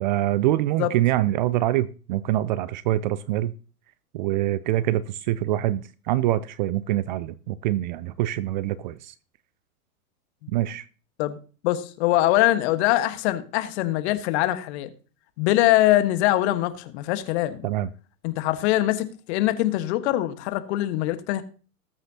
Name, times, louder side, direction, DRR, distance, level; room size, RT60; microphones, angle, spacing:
voice 1, 0.0-3.5 4.1-9.1 10.5-10.8 17.6-17.9, right 14 dB, 35° right, 0.4 m, -25 dB
voice 2, 11.6-14.9 15.4-17.6 18.2-21.4, left 15 dB, 45° left, 1.4 m, -23 dB
20.0 x 8.0 x 2.8 m
hypercardioid pair, 105°, 44 cm